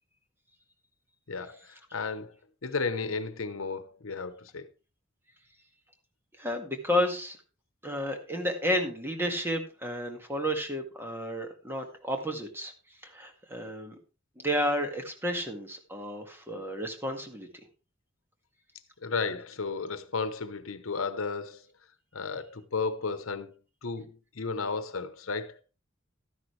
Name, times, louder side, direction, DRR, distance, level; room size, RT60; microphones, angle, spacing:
voice 1, 1.3-2.4 2.6-4.7 19.0-21.6 22.1-23.5 23.8-25.6, left 4 dB, 80° left, 1.0 m, -33 dB
voice 2, 6.4-7.4 7.8-12.7 13.0-13.9 14.4-17.5, equal, 10° right, 1.9 m, -31 dB
12.5 x 10.5 x 3.3 m
head